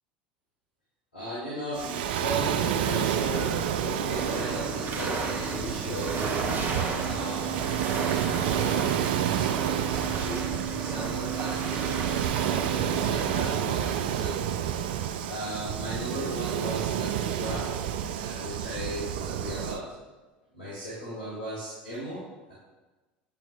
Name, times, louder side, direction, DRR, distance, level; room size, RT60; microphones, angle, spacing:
voice 1, 1.1-6.4 7.0-7.7 7.9-14.5 15.3-17.7 18.2-19.9 20.5-22.5, equal, 85° left, -9 dB, 1.7 m, -37 dB
Waves surf, 1.7-19.8, right 10 dB, 65° right, 0.4 m, -30 dB
sound 1, 4.1-13.5, right 5 dB, 35° right, 1.0 m, -32 dB
8.8 x 5.9 x 2.3 m, 1.2 s
figure-of-eight pair, 75°, 6 cm